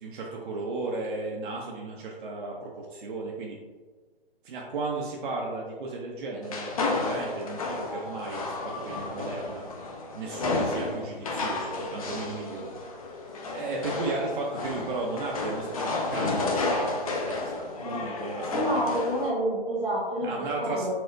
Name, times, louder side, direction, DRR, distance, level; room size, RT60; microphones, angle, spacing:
voice 1, 0.0-3.6 4.4-9.7 10.1-12.7 13.5-19.1 20.2-20.9, right 3 dB, 55° right, -2 dB, 0.5 m, -35 dB
sound 1, 6.4-19.3, left 3 dB, 35° left, 0.4 m, -32 dB
voice 2, 18.5-20.9, right 1 dB, 10° left, -13 dB, 0.9 m, -28 dB
4.2 x 2.1 x 2.5 m, 1.4 s
hypercardioid pair, 150°, 30 cm